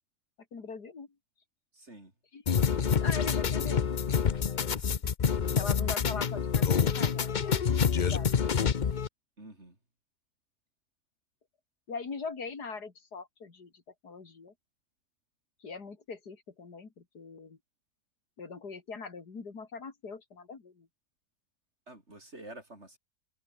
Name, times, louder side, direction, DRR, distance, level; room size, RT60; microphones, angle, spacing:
voice 1, 0.5-1.1 2.3-2.7 3.0-3.9 5.5-8.5 11.9-14.5 15.6-17.6 18.4-20.9, left 4 dB, 80° left, 3.3 m, -42 dB
voice 2, 1.7-2.1 4.7-5.0 6.1-6.2 9.4-9.8 21.9-23.0, right 1 dB, 40° right, 6.5 m, -49 dB
sound 1, 2.5-9.1, left 7 dB, 40° left, 0.7 m, -27 dB
omnidirectional pair, 1.7 m